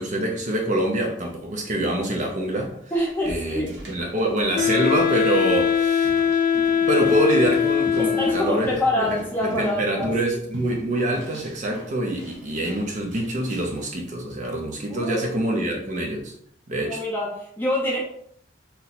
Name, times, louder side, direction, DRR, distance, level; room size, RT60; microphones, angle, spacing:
voice 1, 0.0-2.9 3.3-6.1 6.8-16.3 16.7-17.0, right 1 dB, 40° right, 1 dB, 0.5 m, -25 dB
voice 2, 2.9-3.7 8.0-10.4 14.9-15.2 16.8-18.0, left 1 dB, 10° left, -4 dB, 0.8 m, -26 dB
sound 1, 3.0-13.9, equal, 70° right, 0.8 m, -41 dB
Wind instrument woodwind instrument, 4.5-8.7, left 8 dB, 45° left, 0.4 m, -21 dB
2.8 x 2.1 x 4.0 m, 0.64 s
head